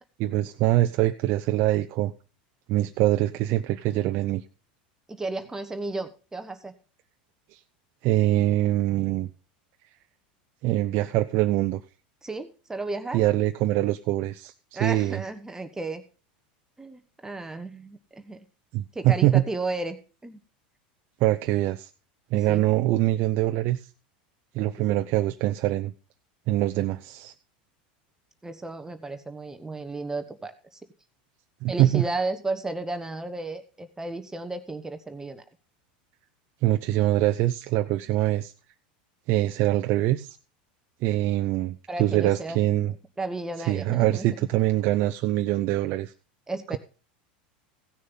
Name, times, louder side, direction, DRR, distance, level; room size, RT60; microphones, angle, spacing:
voice 1, 0.2-2.1 2.7-4.4 7.5-7.6 8.0-9.3 10.6-11.8 13.1-15.2 18.7-19.4 21.2-21.9 22.3-23.9 24.5-25.9 26.5-27.3 31.6-32.0 36.6-38.5 39.3-40.4 41.0-42.9 43.7-46.1, right 15 dB, 55° right, 8 dB, 0.6 m, -24 dB
voice 2, 5.1-6.7 12.2-13.2 14.7-16.0 16.8-18.0 18.3-18.4 18.9-20.4 22.3-22.6 28.4-30.8 31.7-35.4 41.9-42.6 43.2-44.3 46.5-46.8, right 2 dB, 10° right, 8 dB, 1.0 m, -33 dB
16.0 x 6.5 x 5.4 m, 0.35 s
hypercardioid pair, 100°, 5 cm